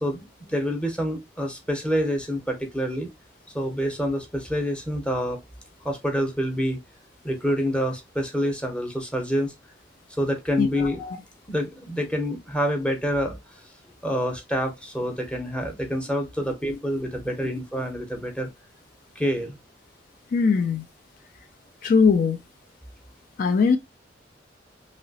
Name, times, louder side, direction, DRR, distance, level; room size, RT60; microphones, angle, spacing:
voice 1, 0.0-3.1 3.5-5.4 5.8-6.8 7.2-9.5 10.1-11.2 11.5-13.4 14.0-18.5 19.2-19.6, equal, 5° left, 0.8 m, -27 dB
voice 2, 10.6-11.0 20.3-20.8 21.8-22.4 23.4-23.8, left 5 dB, 50° left, 0.3 m, -20 dB
3.0 x 2.8 x 2.7 m
head